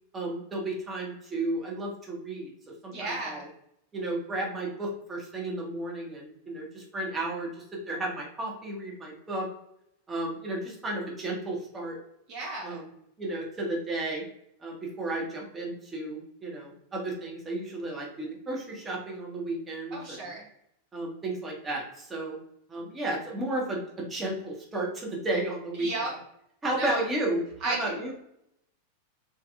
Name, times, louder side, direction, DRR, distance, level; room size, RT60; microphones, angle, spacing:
voice 1, 0.1-2.5 2.8-3.5 3.9-9.5 10.1-12.0 12.6-12.9 13.2-14.2 14.6-20.3 20.9-22.4 22.7-25.9 26.6-28.1, right 2 dB, 15° right, -2 dB, 1.1 m, -33 dB
voice 2, 2.9-3.4 12.3-12.8 19.9-20.4 25.8-26.2 26.8-27.0 27.6-28.0, right 2 dB, 40° right, -3 dB, 0.8 m, -33 dB
3.4 x 2.9 x 2.4 m, 0.76 s
figure-of-eight pair, 90°, 0 cm